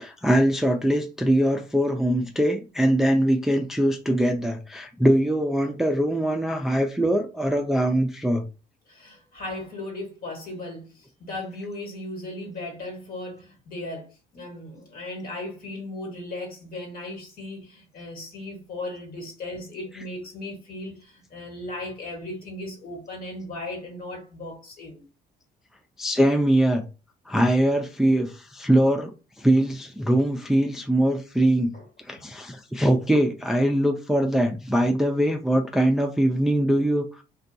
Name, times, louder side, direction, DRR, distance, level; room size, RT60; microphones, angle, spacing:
voice 1, 0.0-8.4 26.0-26.9 27.3-31.7 32.1-37.2, right 1 dB, ahead, 0.3 m, -22 dB
voice 2, 8.9-25.0 31.7-31.8, left 2 dB, 60° left, 1.3 m, -37 dB
2.5 x 2.2 x 2.6 m
cardioid pair, 110°, 17 cm